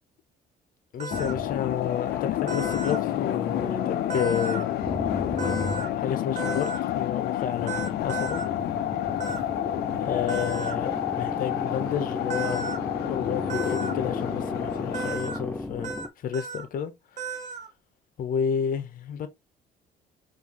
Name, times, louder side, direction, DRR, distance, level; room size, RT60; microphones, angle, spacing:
voice 1, 0.9-4.9 5.9-8.4 10.0-12.7 13.0-15.9 16.2-16.9 18.2-19.3, left 8 dB, 55° left, 0.8 m, -31 dB
sound 1, 1.0-1.3 2.5-3.0 4.1-4.6 5.4-5.9 6.4-6.8 7.7-8.5 9.2-9.4 10.3-10.8 12.3-12.8 13.5-13.9 14.9-15.4 15.8-16.1 16.3-16.6 17.2-17.7, right 4 dB, 45° right, 0.8 m, -34 dB
sound 2, 1.1-15.2, left 12 dB, 70° left, 0.5 m, -29 dB
sound 3, 1.1-4.2 4.8-6.6 7.6-16.1, left 2 dB, 10° left, 0.5 m, -35 dB
4.6 x 2.6 x 2.9 m
cardioid pair, 110°, 17 cm